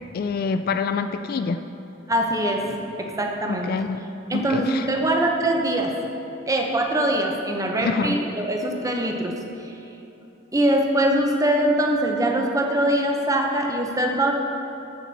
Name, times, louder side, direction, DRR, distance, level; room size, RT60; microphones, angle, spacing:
voice 1, 0.1-1.6 3.5-4.0 4.3-4.9 7.8-8.2, left 5 dB, 45° left, 9 dB, 0.3 m, -26 dB
voice 2, 2.1-3.7 4.3-5.9 6.5-9.3 9.6-9.8 10.5-14.3, right 1 dB, 15° right, 2 dB, 0.8 m, -23 dB
14.5 x 5.9 x 4.2 m, 3.0 s
head